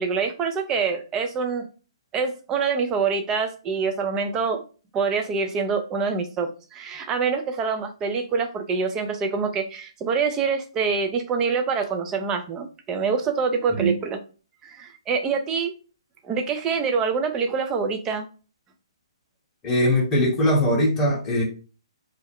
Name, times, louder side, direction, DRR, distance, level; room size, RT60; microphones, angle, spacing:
voice 1, 0.0-1.7 2.1-4.6 4.9-14.2 14.6-15.7 16.2-18.3, right 5 dB, 20° right, 5 dB, 0.4 m, -25 dB
voice 2, 19.6-21.4, equal, 15° left, -3 dB, 1.0 m, -21 dB
2.4 x 2.1 x 3.4 m, 0.35 s
hypercardioid pair, 140°, 3 cm